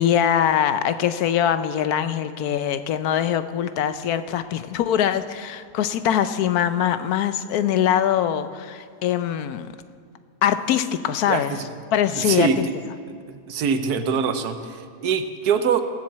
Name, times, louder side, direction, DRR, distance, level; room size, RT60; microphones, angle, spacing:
voice 1, 0.0-9.7 10.4-11.6 11.9-12.5, left 10 dB, 80° left, 11 dB, 1.1 m, -22 dB
voice 2, 11.3-11.7 12.1-12.6 13.3-15.8, right 6 dB, 85° right, 9 dB, 1.4 m, -23 dB
17.5 x 7.5 x 7.4 m, 2.1 s
omnidirectional pair, 1.6 m